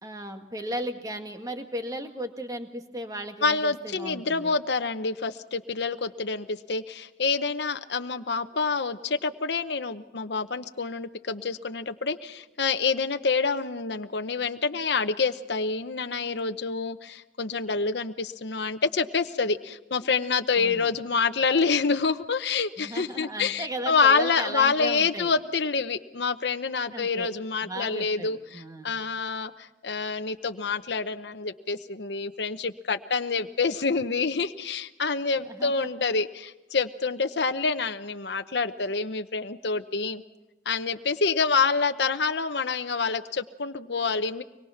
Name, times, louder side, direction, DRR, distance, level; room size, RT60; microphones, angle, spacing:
voice 1, 0.0-4.6 20.6-20.9 22.8-25.3 26.9-27.3 27.6-28.9 35.4-35.9, right 1 dB, 20° right, 5 dB, 1.8 m, -36 dB
voice 2, 3.4-40.2 40.7-44.4, left 4 dB, 65° left, 8 dB, 0.9 m, -27 dB
24.5 x 21.5 x 5.8 m, 1.1 s
head